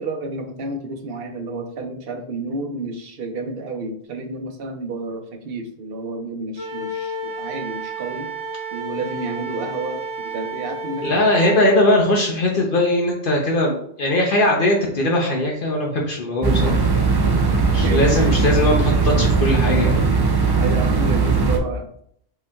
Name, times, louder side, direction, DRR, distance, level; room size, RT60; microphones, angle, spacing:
voice 1, 0.0-8.3 8.7-11.3 11.5-11.7 16.6-16.8 17.3-18.4 20.6-21.8, right 3 dB, 65° right, 4 dB, 0.8 m, -30 dB
Wind instrument woodwind instrument, 6.6-11.7, right 1 dB, 25° left, 1.6 m, -31 dB
voice 2, 11.0-16.8 17.7-20.0, left 1 dB, 55° left, -1 dB, 0.9 m, -20 dB
sound 1, 16.4-21.6, right 4 dB, 40° right, 0.3 m, -18 dB
5.3 x 2.9 x 2.3 m, 0.65 s
omnidirectional pair, 1.1 m